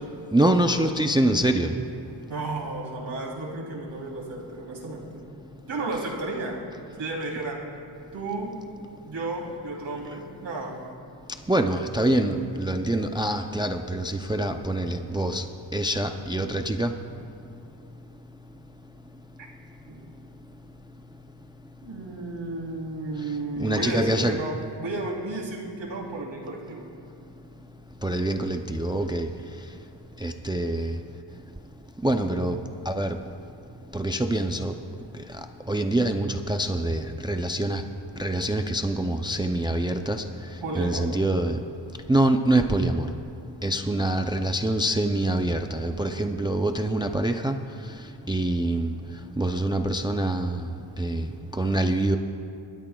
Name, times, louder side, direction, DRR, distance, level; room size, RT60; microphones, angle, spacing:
voice 1, 0.3-1.7 11.5-15.4 15.7-16.9 23.6-24.4 28.0-29.3 30.2-31.0 32.0-32.6 32.9-33.2 33.9-34.7 35.7-37.8 38.2-40.2 40.7-41.6 42.1-43.1 43.6-47.6 48.3-48.9 49.4-50.7 51.0-51.3 51.6-52.2, right 1 dB, 10° right, 5 dB, 0.4 m, -25 dB
voice 2, 2.3-5.2 5.7-6.6 7.0-7.6 8.1-8.5 9.1-10.8 19.9-20.0 21.8-26.9 40.6-41.0, right 2 dB, 85° right, -3 dB, 3.1 m, -33 dB
28.5 x 12.5 x 2.3 m, 2.5 s
wide cardioid pair, 165°, 44 cm